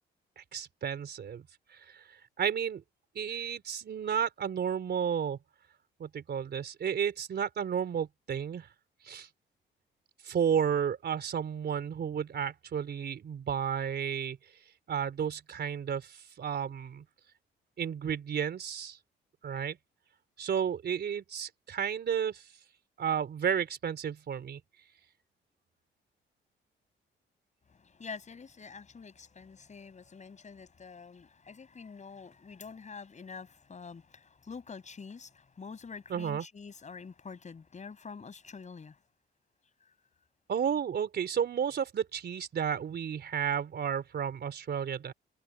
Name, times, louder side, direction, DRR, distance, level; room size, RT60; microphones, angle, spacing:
voice 1, 0.4-1.5 1.7-2.8 3.2-5.4 6.0-8.7 9.0-9.3 10.2-14.4 14.9-17.0 17.8-19.0 19.4-19.8 20.4-22.4 23.0-24.6 36.1-36.4 40.5-45.1, right 8 dB, 55° right, 4.0 m, -32 dB
voice 2, 27.7-39.0, left 5 dB, 35° left, 6.6 m, -46 dB
cardioid pair, 90°, 20 cm